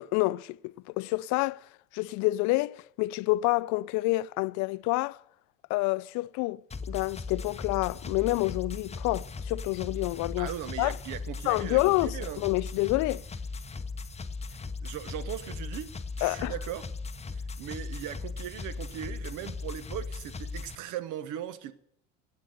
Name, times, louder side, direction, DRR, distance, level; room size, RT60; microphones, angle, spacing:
voice 1, 0.0-1.6 1.9-5.2 5.7-6.6 6.9-10.5 10.8-11.0 11.5-13.2 16.2-16.5, left 21 dB, 50° left, 0.5 m, -28 dB
sound 1, 6.7-20.8, left 4 dB, 15° left, 0.9 m, -38 dB
voice 2, 10.4-12.4 14.5-15.9 16.2-16.8 17.3-21.7, right 11 dB, 55° right, 1.2 m, -39 dB
17.0 x 8.7 x 6.7 m
hypercardioid pair, 75°, 38 cm